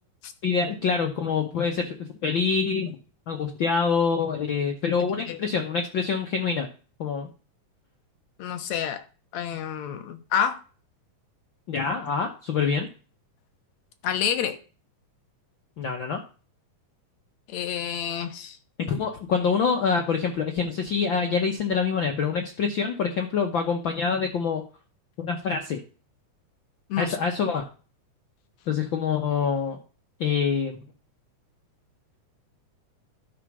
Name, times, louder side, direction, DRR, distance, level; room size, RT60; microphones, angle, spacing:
voice 1, 0.4-2.0 2.2-3.0 3.3-6.7 7.0-7.3 11.7-12.9 15.8-16.2 18.9-24.6 25.2-25.8 27.0-27.7 28.7-29.8 30.2-30.8, left 5 dB, 90° left, 1.0 m, -25 dB
voice 2, 8.4-9.0 9.3-10.6 14.0-14.6 17.5-18.6 26.9-27.2, left 8 dB, 70° left, 2.1 m, -28 dB
12.0 x 5.1 x 6.1 m
omnidirectional pair, 3.8 m